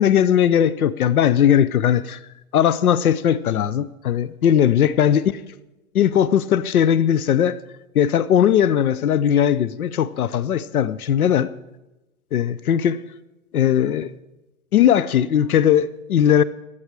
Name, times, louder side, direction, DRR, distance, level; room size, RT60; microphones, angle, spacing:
voice 1, 0.0-2.2 2.5-5.2 5.9-7.6 7.9-11.5 12.3-13.0 13.5-14.1 14.7-16.4, left 9 dB, 85° left, 0.9 m, -18 dB
17.0 x 12.0 x 4.8 m
hypercardioid pair, 165°, 42 cm